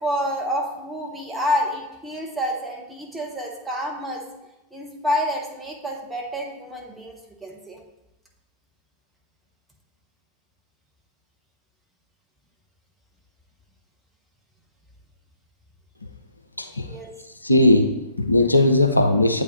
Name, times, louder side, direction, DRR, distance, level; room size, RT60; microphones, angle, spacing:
voice 1, 0.0-4.3 4.7-7.8 16.8-17.1, equal, 5° right, -1 dB, 1.1 m, -28 dB
voice 2, 17.4-19.4, left 1 dB, 85° left, 6 dB, 0.4 m, -18 dB
8.1 x 3.2 x 3.8 m, 0.95 s
figure-of-eight pair, 90°, 0 cm